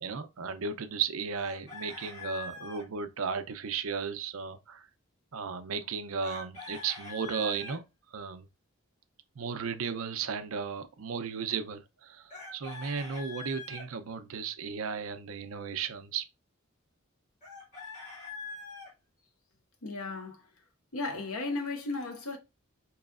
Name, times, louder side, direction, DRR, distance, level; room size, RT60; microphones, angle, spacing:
voice 1, 0.0-4.9 5.3-7.8 8.1-8.5 9.4-16.2, right 6 dB, 75° right, 0.5 m, -35 dB
Chicken rooster, 1.3-2.8 6.2-7.8 12.3-13.9 17.4-18.9, left 3 dB, 30° left, 2.1 m, -43 dB
voice 2, 19.8-20.4 20.9-22.4, left 3 dB, 85° left, 1.0 m, -35 dB
4.8 x 3.0 x 2.4 m
head